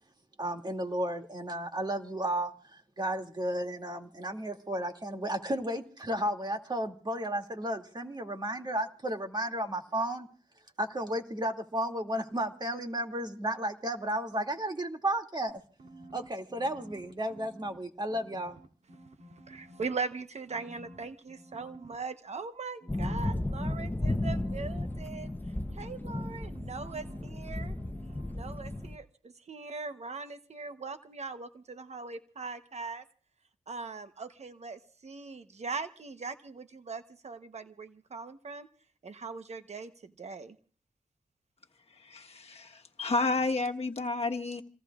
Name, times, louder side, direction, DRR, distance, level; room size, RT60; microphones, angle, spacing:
voice 1, 0.4-2.5 3.0-10.3 10.8-15.6 16.1-18.6, right 1 dB, 35° right, 3 dB, 2.5 m, -33 dB
sound 1, 15.5-17.8 18.1-20.1 20.5-21.9 22.8-28.4 28.7-28.9, right 1 dB, 80° right, 2.9 m, -52 dB
voice 2, 19.5-25.3 25.7-27.7 28.3-33.0 33.7-38.7 39.0-40.6, right 4 dB, 60° right, 9 dB, 1.0 m, -40 dB
sound 2, 22.9-29.0, left 1 dB, 15° left, 0.8 m, -34 dB
voice 3, 42.0-44.6, left 3 dB, 55° left, 4 dB, 1.4 m, -31 dB
28.0 x 19.0 x 2.5 m, 0.41 s
cardioid pair, 60°, 13 cm